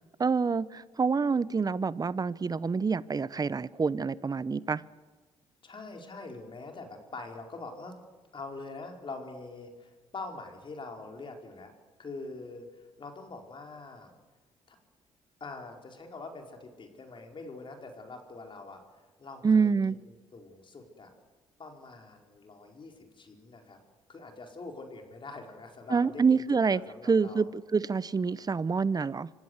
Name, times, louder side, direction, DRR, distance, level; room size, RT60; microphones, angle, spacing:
voice 1, 0.2-4.8 19.4-20.0 25.9-29.3, right 5 dB, 30° right, 19 dB, 0.8 m, -27 dB
voice 2, 5.6-7.9 8.3-11.7 12.0-14.1 14.7-14.8 15.4-18.8 19.2-19.9 20.3-21.1 21.6-23.8 24.1-27.4, left 3 dB, 45° left, 3 dB, 4.8 m, -44 dB
25.5 x 16.5 x 8.2 m, 1.3 s
supercardioid pair, 65°, 12 cm